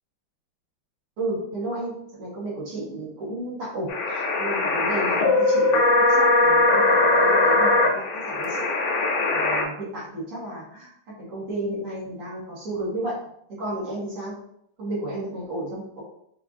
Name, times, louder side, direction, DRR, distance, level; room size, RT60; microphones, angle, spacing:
voice 1, 1.2-5.7 5.9-8.7 9.3-10.9 11.3-13.3 13.6-14.4 14.8-16.0, right 1 dB, 80° right, -7 dB, 2.5 m, -32 dB
sound 1, 3.9-9.6, left 2 dB, 85° left, 1.7 m, -20 dB
5.5 x 2.4 x 2.6 m, 0.70 s
omnidirectional pair, 2.4 m